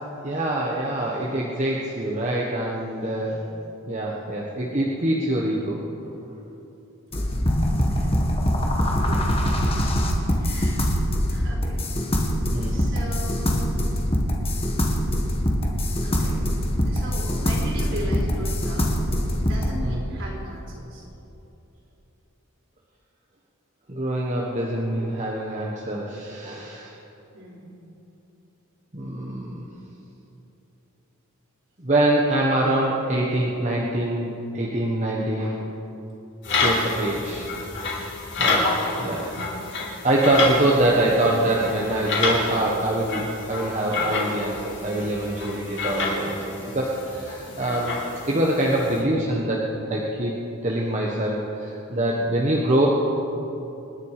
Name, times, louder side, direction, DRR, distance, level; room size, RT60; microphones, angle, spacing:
voice 1, 0.2-3.4 3.9-5.8 12.5-12.9 19.8-20.0 23.9-27.0 28.9-29.6 31.8-35.6 36.6-37.5 38.4-39.3 40.0-46.3 46.7-48.0 48.3-50.3 50.6-52.9, right 1 dB, 35° right, -3 dB, 1.3 m, -24 dB
voice 2, 3.1-3.4 7.1-7.4 7.7-8.1 9.0-10.0 10.4-11.8 12.7-13.7 16.0-16.3 16.8-18.9 19.4-21.1 27.3-27.7 39.2-39.7 47.4-47.8 52.0-52.5, equal, 60° right, -2 dB, 4.2 m, -39 dB
sound 1, 7.1-19.7, equal, 25° left, 1.6 m, -23 dB
sound 2, 36.4-49.0, left 3 dB, 55° left, 3.2 m, -28 dB
Bowed string instrument, 40.4-43.6 44.6-47.5, right 3 dB, 10° right, 2.0 m, -40 dB
27.0 x 10.5 x 5.0 m, 2.9 s
head